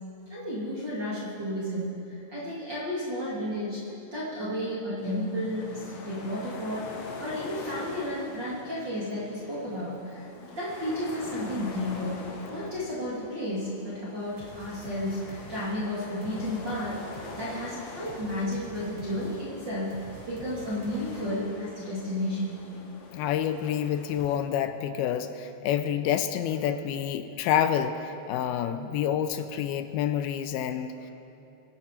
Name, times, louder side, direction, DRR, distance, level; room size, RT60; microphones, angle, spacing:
voice 1, 0.3-3.8 4.1-12.2 12.5-22.6, left 1 dB, 30° right, -8 dB, 2.5 m, -32 dB
sound 1, 5.0-24.4, left 3 dB, 60° left, 1.6 m, -44 dB
sound 2, 14.4-21.6, right 2 dB, 90° right, 4.6 m, -48 dB
voice 2, 23.1-31.1, left 9 dB, 80° left, 9 dB, 2.4 m, -28 dB
24.0 x 11.0 x 4.5 m, 2.8 s
omnidirectional pair, 4.6 m